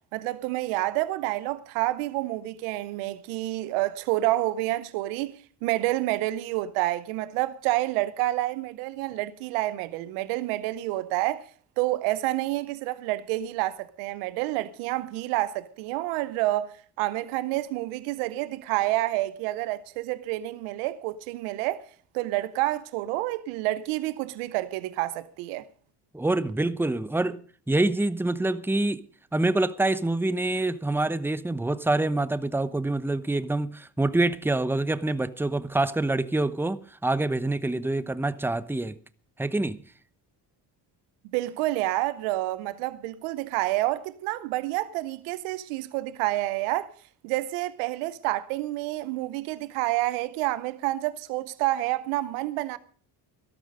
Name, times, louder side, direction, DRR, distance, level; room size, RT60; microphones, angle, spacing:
voice 1, 0.1-5.3 5.6-11.5 11.8-21.8 22.1-25.7 41.3-46.9 47.2-52.8, right 16 dB, 85° right, 0.8 m, -28 dB
voice 2, 26.1-27.4 27.7-29.1 29.3-39.0 39.4-39.8, right 2 dB, 5° right, 0.9 m, -26 dB
13.0 x 12.5 x 5.2 m
hypercardioid pair, 55°, 49 cm